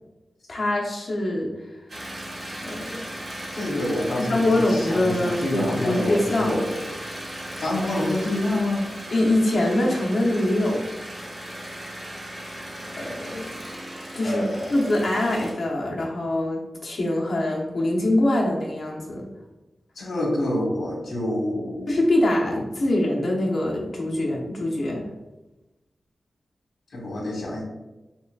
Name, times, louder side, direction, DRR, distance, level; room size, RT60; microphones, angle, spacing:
voice 1, 0.5-1.5 2.6-3.0 4.3-6.6 9.1-10.8 13.0-13.5 14.1-14.4 14.7-19.3 21.9-25.0, left 1 dB, 50° left, -3 dB, 0.9 m, -23 dB
sound 1, 1.9-15.5, right 1 dB, 40° right, 1.2 m, -37 dB
voice 2, 3.5-6.8 7.6-8.9 14.2-14.9 20.0-21.9 26.9-27.6, left 1 dB, 75° left, -2 dB, 1.2 m, -27 dB
5.7 x 2.3 x 2.4 m, 1.0 s
wide cardioid pair, 140°, 0 cm